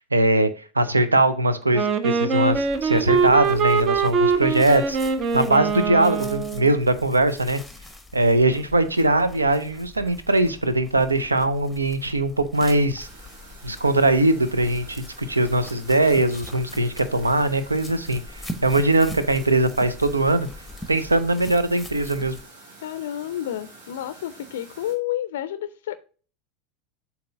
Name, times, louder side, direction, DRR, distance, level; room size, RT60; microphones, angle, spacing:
voice 1, 0.1-0.5 0.7-5.0 5.3-7.6 8.1-13.1 13.6-20.5 20.9-22.4, right 2 dB, 80° right, 0.6 m, -21 dB
Wind instrument woodwind instrument, 1.7-6.7, right 5 dB, 40° right, 0.7 m, -23 dB
sound 1, 2.5-22.4, left 1 dB, ahead, 0.9 m, -42 dB
sound 2, 13.0-24.9, right 2 dB, 65° right, 1.9 m, -48 dB
voice 2, 22.8-25.9, left 12 dB, 65° left, 0.4 m, -30 dB
7.6 x 2.9 x 5.5 m
figure-of-eight pair, 75°, 0 cm